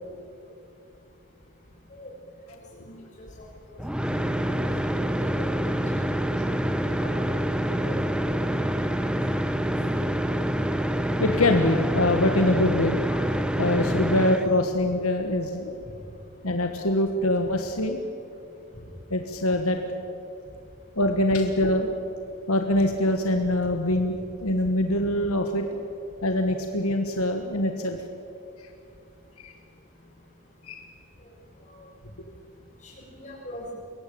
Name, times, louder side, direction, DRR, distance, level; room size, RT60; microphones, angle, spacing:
voice 1, 2.8-3.3 3.7-3.8 4.1-4.7 5.2-5.4 6.9-7.1 7.7-8.0 9.7-10.1 32.8-33.6, left 1 dB, 35° left, -4 dB, 7.2 m, -42 dB
sound 1, 3.8-14.5, equal, 5° right, 0.8 m, -26 dB
voice 2, 10.8-15.8 16.4-18.0 19.1-19.8 20.9-21.9 22.5-24.2 24.4-25.6 26.2-28.0 28.6-28.7 29.4-29.5 30.6-30.9, left 1 dB, 80° left, 5 dB, 1.5 m, -24 dB
23.0 x 17.0 x 8.7 m, 2.6 s
head